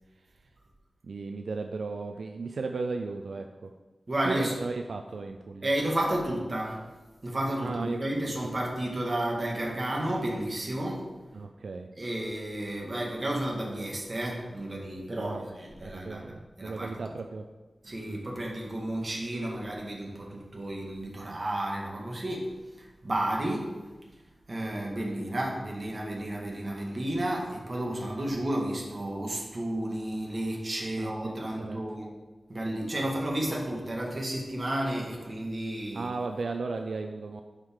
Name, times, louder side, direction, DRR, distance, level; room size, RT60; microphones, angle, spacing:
voice 1, 1.0-3.7 4.2-5.7 7.6-8.0 11.3-11.9 15.2-15.4 15.8-17.5 18.1-18.3 31.0-31.8 35.9-37.4, right 3 dB, 85° right, 5 dB, 0.4 m, -35 dB
voice 2, 4.1-4.6 5.6-6.8 7.2-11.1 12.0-16.9 17.8-22.5 23.0-23.8 24.5-32.1 32.5-36.1, right 1 dB, 45° right, -1 dB, 1.8 m, -32 dB
11.0 x 4.7 x 3.8 m, 1.2 s
wide cardioid pair, 65°, 0 cm